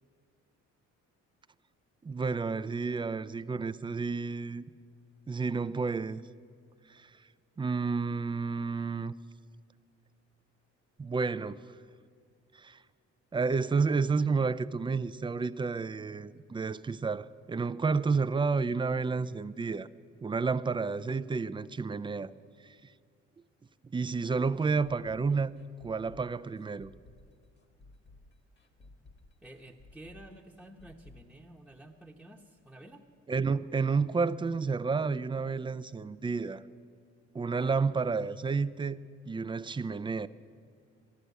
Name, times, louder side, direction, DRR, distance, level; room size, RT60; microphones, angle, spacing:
voice 1, 2.0-4.7 5.3-6.2 6.9-7.0 7.6-9.1 11.0-11.6 12.6-12.8 13.3-19.9 20.2-22.3 23.9-25.5 25.8-26.9 33.3-36.6 37.3-40.3, right 4 dB, 15° right, 0.4 m, -30 dB
sound 1, 24.6-32.3 32.6-32.7 33.1-33.2, left 2 dB, 35° left, 1.6 m, -57 dB
voice 2, 29.4-33.0 37.5-37.9, right 1 dB, ahead, 1.0 m, -51 dB
14.0 x 11.5 x 8.1 m
cardioid pair, 90°, 30 cm